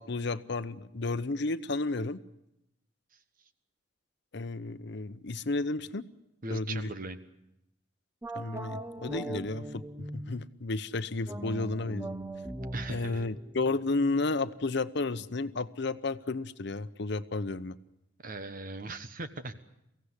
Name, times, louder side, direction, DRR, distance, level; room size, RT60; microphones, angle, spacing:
voice 1, 0.0-2.2 4.3-6.1 6.5-6.9 8.3-12.1 12.9-17.8, left 3 dB, 65° left, 13 dB, 0.8 m, -32 dB
voice 2, 6.4-7.2 12.7-13.3 18.2-19.5, right 2 dB, 50° right, 10 dB, 1.3 m, -39 dB
sound 1, 8.2-10.5 11.2-14.6, right 1 dB, 15° right, 0.8 m, -40 dB
23.5 x 16.5 x 9.8 m, 0.87 s
head